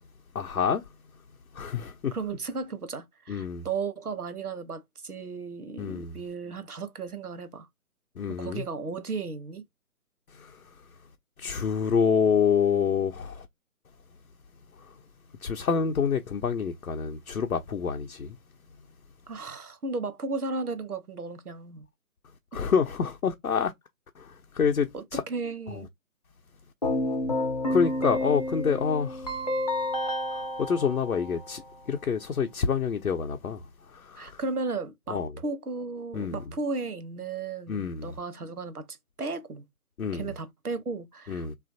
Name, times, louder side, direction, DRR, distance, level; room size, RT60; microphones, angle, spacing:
voice 1, 0.3-0.9 1.5-2.2 3.3-3.7 5.8-6.2 8.2-8.6 10.3-10.9 11.4-13.5 14.7-15.0 15.4-18.4 22.5-23.7 24.1-25.2 25.7-25.8 27.7-29.5 30.3-34.4 35.1-35.3 36.1-36.4 37.7-38.2 40.0-40.3 41.3-41.5, left 6 dB, 75° left, 0.7 m, -27 dB
voice 2, 2.1-7.7 8.4-9.6 19.3-21.9 24.9-25.9 34.2-39.6 40.1-41.5, right 4 dB, 90° right, 0.8 m, -35 dB
Keyboard (musical), 26.8-31.8, left 1 dB, 30° left, 0.5 m, -30 dB
3.2 x 2.5 x 2.5 m
figure-of-eight pair, 145°, 44 cm